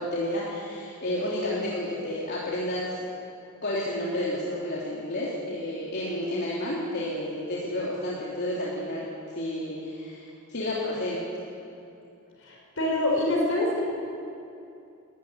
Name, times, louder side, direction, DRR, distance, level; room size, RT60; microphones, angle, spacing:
voice 1, 0.0-3.0 3.6-11.2, left 1 dB, 55° left, -6 dB, 3.2 m, -31 dB
voice 2, 12.4-13.8, left 1 dB, 75° left, -1 dB, 6.0 m, -25 dB
20.0 x 14.0 x 9.7 m, 2.7 s
head